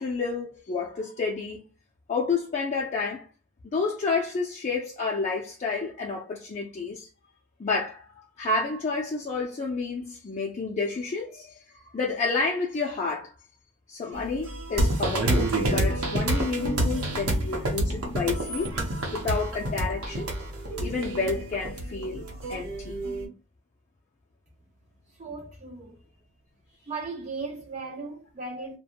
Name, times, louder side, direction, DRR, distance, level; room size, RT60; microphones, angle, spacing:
voice 1, 0.0-1.6 2.1-3.3 3.7-7.1 7.6-8.1 8.4-11.6 11.9-13.3 13.9-18.7 19.1-20.3 20.8-22.2 22.5-23.0, left 4 dB, 35° left, 0.4 m, -30 dB
sound 1, 14.1-23.3, right 2 dB, 60° right, 0.9 m, -37 dB
sound 2, 14.8-22.3, right 1 dB, 85° right, 0.8 m, -26 dB
voice 2, 25.1-26.0 26.9-28.8, right 4 dB, 35° right, 0.4 m, -37 dB
2.4 x 2.2 x 2.8 m
head